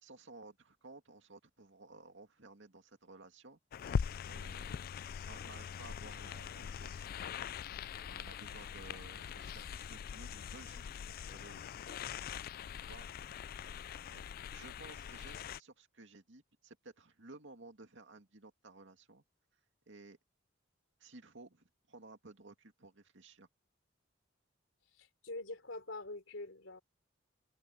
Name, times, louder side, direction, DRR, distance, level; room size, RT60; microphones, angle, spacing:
voice 1, 0.0-3.9 4.3-4.9 5.3-7.1 8.0-12.1 12.7-13.1 14.1-14.2 14.5-19.2 19.9-20.2 21.0-23.5, right 3 dB, 70° right, 2.5 m, -56 dB
sound 1, 3.7-15.6, left 7 dB, 50° left, 0.3 m, -42 dB
voice 2, 25.0-26.8, left 2 dB, 80° left, 3.4 m, -45 dB
head